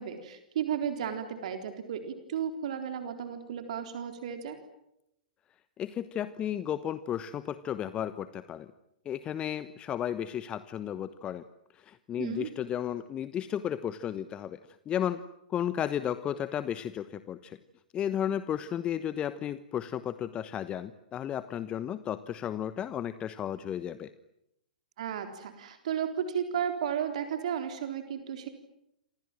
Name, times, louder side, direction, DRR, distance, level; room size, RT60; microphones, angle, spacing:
voice 1, 0.0-4.6 12.2-12.5 25.0-28.5, right 8 dB, 55° right, 7 dB, 3.8 m, -34 dB
voice 2, 5.8-8.7 9.0-11.4 11.7-14.6 14.9-15.2 15.5-17.6 17.9-24.1, left 10 dB, 25° left, 14 dB, 1.1 m, -33 dB
28.5 x 26.0 x 7.6 m, 0.81 s
figure-of-eight pair, 110°, 4 cm